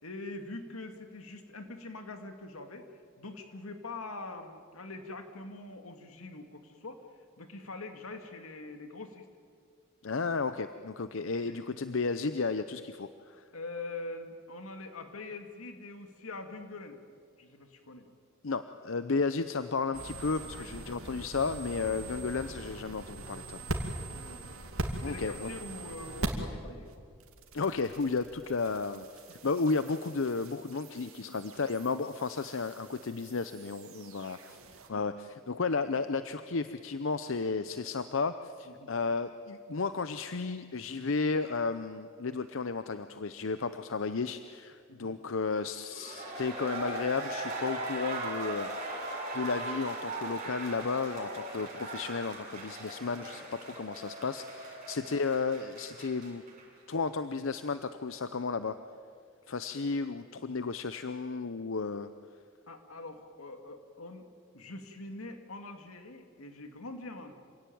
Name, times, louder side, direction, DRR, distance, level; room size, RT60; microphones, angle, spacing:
voice 1, 0.0-2.9 3.2-7.0 7.4-9.3 11.4-11.6 13.5-17.0 17.4-18.1 20.5-20.7 24.1-24.5 25.0-26.9 29.4-29.8 31.3-31.4 33.9-34.2 34.9-35.1 38.7-38.9 44.9-45.1 62.7-64.2 64.5-67.3, left 2 dB, 90° left, 6 dB, 2.2 m, -44 dB
voice 2, 10.0-13.4 18.4-23.9 25.0-25.5 27.5-34.6 34.9-56.4 56.9-58.7 59.5-62.1, left 4 dB, 65° left, 11 dB, 0.7 m, -33 dB
sound 1, 19.9-26.6 26.8-34.9, right 2 dB, 90° right, 2.5 m, -42 dB
sound 2, 45.8-56.6 56.9-57.0, right 2 dB, 35° right, 6.6 m, -39 dB
26.5 x 17.5 x 9.3 m, 2.2 s
head